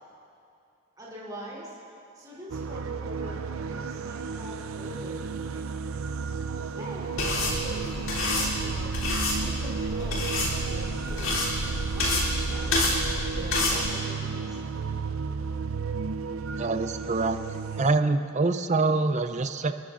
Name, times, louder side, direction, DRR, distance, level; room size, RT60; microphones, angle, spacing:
voice 1, 1.0-1.8 2.1-5.7 6.6-8.9 9.4-13.0 13.3-15.0, equal, 20° right, -8 dB, 3.6 m, -43 dB
sound 1, 2.5-17.9, right 5 dB, 85° right, 0.5 m, -33 dB
sound 2, 7.2-13.8, left 2 dB, 75° left, 3.3 m, -28 dB
voice 2, 16.6-17.4 17.8-19.7, right 3 dB, 35° right, 9 dB, 0.6 m, -25 dB
29.5 x 14.0 x 2.6 m, 2.5 s
head